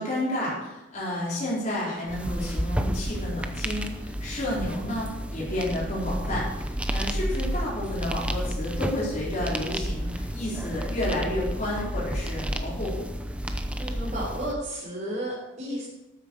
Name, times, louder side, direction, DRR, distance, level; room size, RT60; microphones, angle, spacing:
voice 1, 0.0-12.9, left 1 dB, 40° left, -7 dB, 4.6 m, -31 dB
sound 1, 2.1-14.5, equal, 5° right, 0.7 m, -31 dB
voice 2, 13.8-15.9, right 1 dB, 40° right, -7 dB, 3.8 m, -33 dB
13.0 x 8.9 x 4.8 m, 0.98 s
head